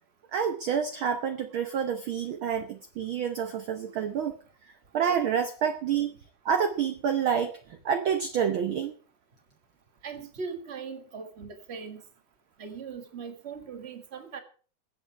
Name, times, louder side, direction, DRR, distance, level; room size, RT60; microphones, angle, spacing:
voice 1, 0.3-4.4 4.9-6.2 6.4-8.9, right 7 dB, 70° right, 7 dB, 1.2 m, -28 dB
voice 2, 10.0-12.0 12.6-14.4, right 5 dB, 30° right, 6 dB, 1.3 m, -39 dB
21.5 x 8.1 x 4.6 m, 0.41 s
omnidirectional pair, 3.5 m